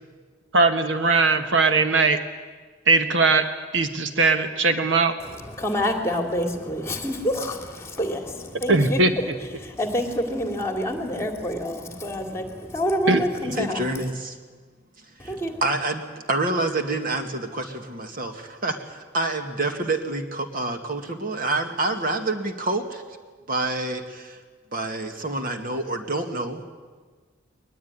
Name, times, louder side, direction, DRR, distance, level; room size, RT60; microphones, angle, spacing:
voice 1, 0.5-2.2 2.9-3.5 3.7-5.1 8.7-9.1 13.1-13.2, right 3 dB, 65° right, 8 dB, 1.4 m, -19 dB
voice 2, 5.2-14.1 15.2-15.6, equal, 15° left, 4 dB, 2.9 m, -28 dB
voice 3, 13.6-14.4 15.2-15.3 15.6-23.0 23.5-24.4 24.7-26.7, right 2 dB, 45° right, 5 dB, 2.1 m, -27 dB
21.5 x 21.0 x 9.7 m, 1.4 s
head